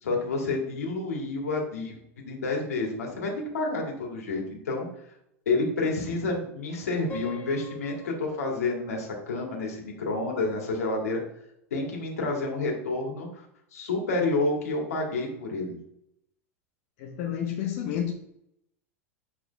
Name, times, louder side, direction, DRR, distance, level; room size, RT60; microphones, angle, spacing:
voice 1, 0.0-2.0 2.2-4.9 5.5-11.2 11.7-13.5 13.7-15.8, left 3 dB, 80° left, 2.1 m, -29 dB
Piano, 7.1-10.1, left 1 dB, 20° left, 2.0 m, -45 dB
voice 2, 17.0-18.1, left 9 dB, 60° left, 0.9 m, -30 dB
7.2 x 4.0 x 3.5 m
hypercardioid pair, 95°, 8 cm